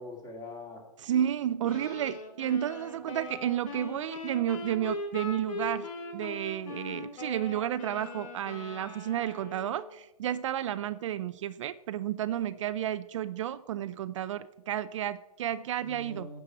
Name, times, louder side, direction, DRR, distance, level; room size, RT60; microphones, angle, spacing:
voice 1, 0.0-0.8 1.6-2.1 15.8-16.4, left 2 dB, 15° left, 1 dB, 2.3 m, -44 dB
voice 2, 1.0-16.3, right 11 dB, 50° right, 12 dB, 0.4 m, -32 dB
sound 1, 1.6-10.0, left 3 dB, 55° left, 2.6 m, -41 dB
9.9 x 4.8 x 7.6 m, 0.92 s
hypercardioid pair, 140°, 21 cm